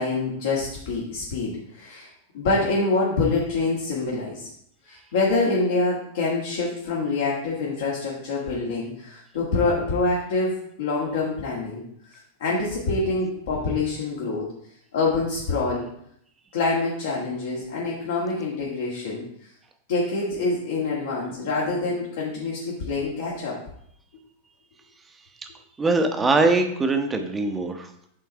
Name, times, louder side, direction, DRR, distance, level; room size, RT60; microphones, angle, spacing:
voice 1, 0.0-2.1 2.3-4.5 4.8-11.8 12.1-14.5 14.9-15.9 16.5-19.5 19.9-23.6, left 3 dB, 60° left, -4 dB, 1.7 m, -26 dB
voice 2, 25.8-27.9, right 3 dB, 15° right, 6 dB, 1.1 m, -22 dB
8.5 x 3.8 x 4.6 m, 0.71 s
figure-of-eight pair, 90°, 0 cm